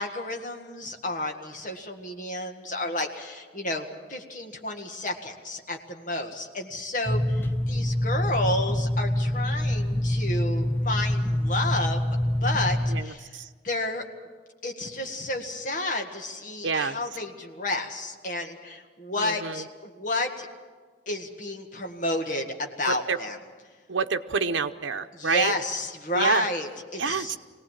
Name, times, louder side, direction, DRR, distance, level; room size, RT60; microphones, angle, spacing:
voice 1, 0.0-12.0 12.4-13.2 13.6-14.0 14.6-20.5 21.1-23.4 25.1-27.4, left 2 dB, 45° left, 4 dB, 1.8 m, -31 dB
sound 1, 7.1-13.0, left 1 dB, 10° left, 0.6 m, -26 dB
voice 2, 12.9-13.5 16.6-17.0 19.2-19.6 22.9-23.2 23.9-25.5 26.1-26.5 27.0-27.4, right 5 dB, 80° right, 7 dB, 0.8 m, -28 dB
23.0 x 18.0 x 7.4 m, 1.5 s
head